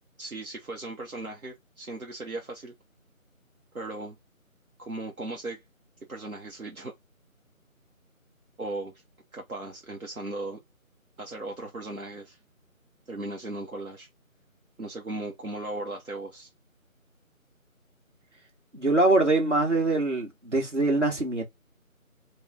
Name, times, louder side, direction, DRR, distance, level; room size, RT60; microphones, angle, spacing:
voice 1, 0.2-2.7 3.7-4.2 4.8-5.6 6.1-6.9 8.6-8.9 9.3-10.6 11.2-12.4 13.1-14.1 14.8-16.5, right 2 dB, 80° right, 1.3 m, -37 dB
voice 2, 18.7-21.4, right 2 dB, 55° right, 2.1 m, -23 dB
4.0 x 2.6 x 3.8 m
figure-of-eight pair, 165°, 42 cm